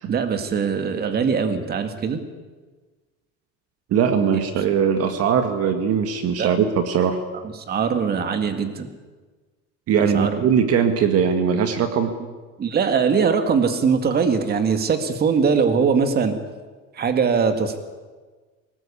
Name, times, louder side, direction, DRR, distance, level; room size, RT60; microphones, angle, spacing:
voice 1, 0.1-2.2 4.3-4.4 6.4-6.6 7.7-8.9 10.1-10.4 12.6-16.4 17.0-17.8, right 6 dB, 30° right, 8 dB, 2.1 m, -21 dB
voice 2, 3.9-7.2 9.9-12.2, right 7 dB, 50° right, 7 dB, 1.8 m, -20 dB
23.5 x 19.5 x 8.5 m, 1.4 s
cardioid pair, 160°, 31 cm